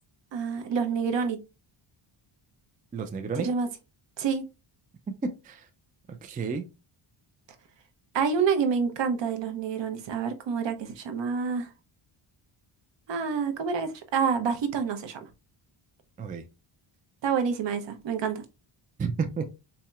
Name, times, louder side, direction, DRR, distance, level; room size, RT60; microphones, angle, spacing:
voice 1, 0.3-1.4 3.4-3.7 4.2-4.4 8.1-11.7 13.1-15.2 17.2-18.4, right 6 dB, 60° right, 0.8 m, -27 dB
voice 2, 2.9-3.5 5.1-5.6 6.1-6.7 16.2-16.4 19.0-19.4, right 5 dB, 20° right, 0.3 m, -31 dB
4.2 x 2.8 x 2.3 m
cardioid pair, 130°, 50 cm